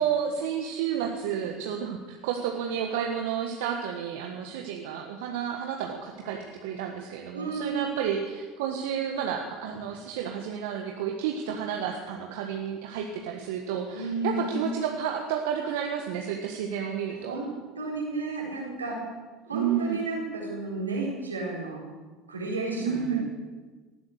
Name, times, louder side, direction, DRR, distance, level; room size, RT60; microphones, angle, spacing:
voice 1, 0.0-17.4 19.5-20.0 22.8-23.2, right 8 dB, 70° right, 2 dB, 1.5 m, -31 dB
voice 2, 7.3-7.9 13.9-14.6 17.3-19.1 19.5-21.9 22.3-23.2, right 3 dB, 90° right, -2 dB, 4.4 m, -32 dB
19.0 x 11.5 x 6.6 m, 1.3 s
hypercardioid pair, 70°, 0 cm